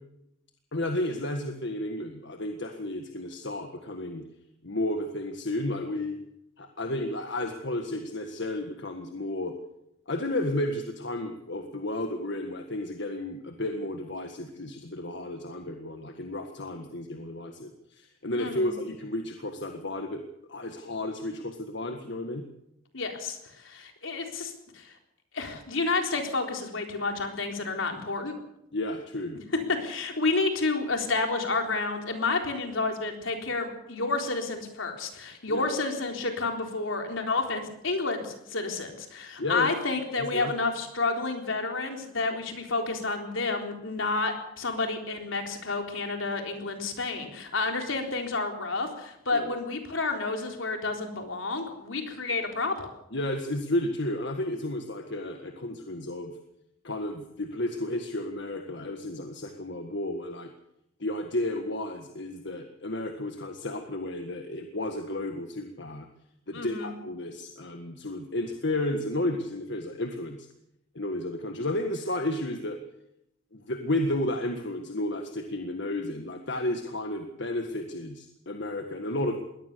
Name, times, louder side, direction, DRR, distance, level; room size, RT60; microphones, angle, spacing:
voice 1, 0.7-4.2 4.6-6.2 6.6-9.5 10.1-20.2 20.5-22.4 28.7-29.4 35.5-35.7 39.4-39.7 40.2-40.5 49.3-49.5 53.1-56.3 56.8-60.5 61.0-66.1 66.5-70.5 70.9-72.8 73.5-79.4, left 1 dB, 60° left, 5 dB, 1.7 m, -32 dB
voice 2, 18.4-18.7 22.9-24.9 25.3-28.4 29.3-29.4 29.7-52.9 66.5-66.9, left 3 dB, 80° left, 3 dB, 3.9 m, -30 dB
22.0 x 18.0 x 6.9 m, 0.80 s
head